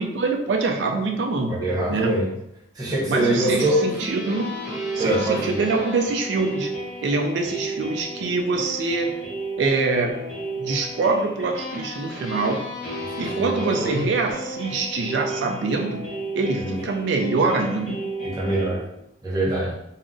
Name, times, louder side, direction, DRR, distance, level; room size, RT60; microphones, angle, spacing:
voice 1, 0.0-2.2 3.1-4.5 4.9-6.7 7.0-9.2 9.6-10.3 10.6-12.7 13.2-18.0, right 3 dB, 80° right, 3 dB, 0.3 m, -24 dB
voice 2, 1.5-2.3 2.8-3.8 5.0-5.5 13.2-14.0 16.6-16.8 18.2-18.8 19.2-19.7, right 1 dB, 20° right, -4 dB, 0.6 m, -24 dB
sound 1, 3.3-18.7, right 1 dB, 40° left, 0.7 m, -33 dB
2.3 x 2.0 x 3.7 m, 0.82 s
head